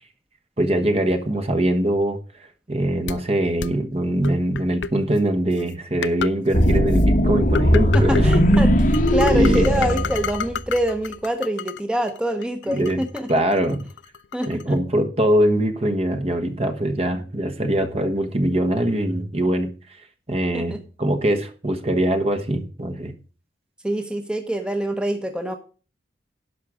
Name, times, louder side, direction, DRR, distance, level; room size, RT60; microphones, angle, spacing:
voice 1, 0.6-2.2 2.7-8.3 9.3-9.7 12.7-13.0 13.3-13.8 14.5-19.7 20.3-23.1, right 1 dB, 35° right, 1.2 m, -22 dB
sound 1, 3.1-3.2 3.6-3.7 4.2-4.9 5.6-5.7 6.0-6.3 6.6-7.0 7.6-8.6 8.9-11.8 12.1-14.6, left 6 dB, 80° left, 0.5 m, -29 dB
sound 2, 6.5-10.8, equal, 45° left, 1.1 m, -18 dB
voice 2, 7.9-13.3 14.3-14.8 20.5-20.8 23.8-25.6, equal, 5° right, 1.0 m, -25 dB
11.0 x 6.0 x 5.0 m
head